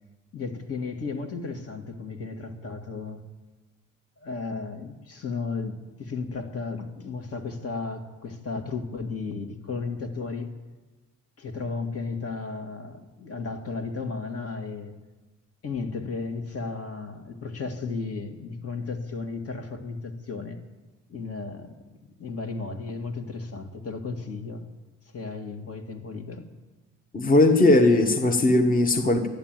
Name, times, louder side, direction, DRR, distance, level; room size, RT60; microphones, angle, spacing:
voice 1, 0.3-3.2 4.2-10.5 11.4-14.9 15.6-20.6 21.1-24.7 25.1-26.5, left 4 dB, 50° left, 6 dB, 2.1 m, -34 dB
voice 2, 27.1-29.3, left 2 dB, 30° left, 5 dB, 1.5 m, -19 dB
12.0 x 11.5 x 9.1 m, 1.2 s
cardioid pair, 90°, 30 cm